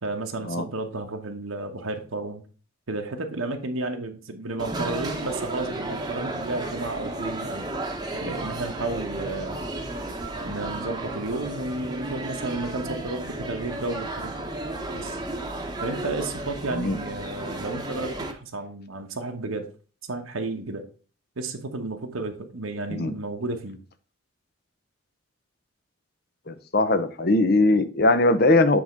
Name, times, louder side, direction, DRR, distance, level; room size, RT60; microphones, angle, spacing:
voice 1, 0.0-2.4 2.9-7.7 8.1-9.6 10.4-14.3 14.9-15.2 15.8-19.7 20.1-20.9 21.4-23.8, right 2 dB, 90° right, 3 dB, 1.1 m, -32 dB
sound 1, 4.6-18.3, right 2 dB, 20° right, 0.9 m, -33 dB
voice 2, 26.5-28.8, left 2 dB, 50° left, 11 dB, 0.7 m, -20 dB
7.9 x 3.6 x 5.2 m, 0.38 s
head